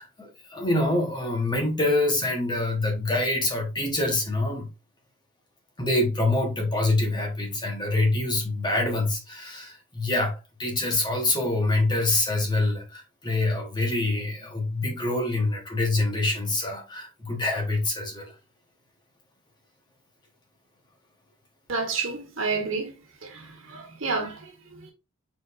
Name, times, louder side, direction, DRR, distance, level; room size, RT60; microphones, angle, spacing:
voice 1, 0.0-4.7 5.8-18.3, left 2 dB, 20° left, 1.1 m, -26 dB
voice 2, 21.7-22.9 23.2-24.9, right 4 dB, 65° right, 1.6 m, -30 dB
5.0 x 4.2 x 2.5 m
head